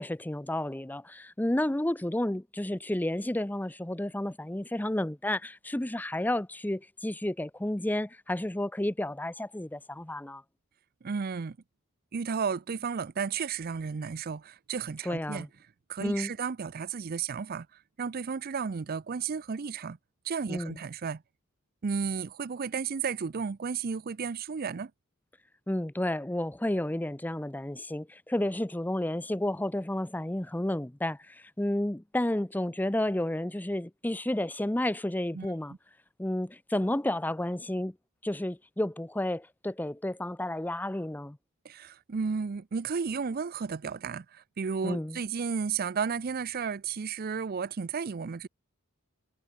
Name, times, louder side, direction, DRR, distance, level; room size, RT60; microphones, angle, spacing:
voice 1, 0.0-10.4 15.0-15.5 16.0-16.3 20.5-20.8 25.7-35.7 36.2-37.9 38.2-41.4 44.8-45.2, left 1 dB, 10° left, 0.6 m, -31 dB
voice 2, 11.0-11.6 12.1-15.5 15.9-17.7 18.0-20.0 20.2-21.2 21.8-24.9 35.3-35.5 41.6-48.5, right 5 dB, 45° right, 0.5 m, -33 dB
head